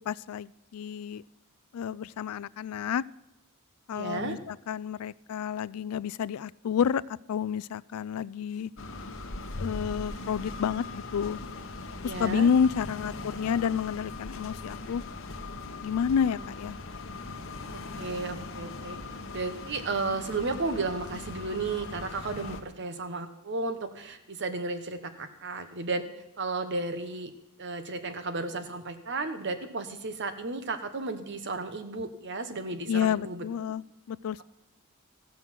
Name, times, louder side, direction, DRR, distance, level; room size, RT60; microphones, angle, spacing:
voice 1, 0.1-1.2 1.7-3.1 3.9-7.0 7.3-8.7 9.6-11.4 12.0-15.0 15.8-16.8 32.9-33.8 34.1-34.4, left 7 dB, 80° left, 20 dB, 0.3 m, -29 dB
voice 2, 3.9-4.5 12.0-12.5 17.7-19.0 19.3-26.0 26.4-27.3 27.6-33.4, right 3 dB, 55° right, 9 dB, 1.1 m, -33 dB
sound 1, 8.8-22.6, left 3 dB, 65° left, 1.1 m, -40 dB
15.0 x 6.3 x 7.4 m, 0.88 s
head